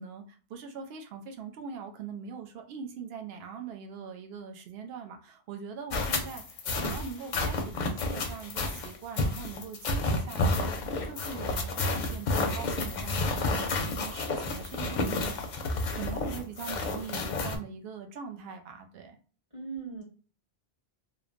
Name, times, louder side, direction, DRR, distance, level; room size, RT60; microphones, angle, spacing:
voice 1, 0.0-19.2, right 6 dB, 70° right, 4 dB, 0.8 m, -42 dB
sound 1, 5.9-17.6, left 2 dB, 55° left, 0.5 m, -30 dB
voice 2, 15.0-15.4 19.5-20.0, right 4 dB, 35° right, -5 dB, 1.4 m, -40 dB
3.1 x 2.0 x 2.4 m, 0.39 s
omnidirectional pair, 1.1 m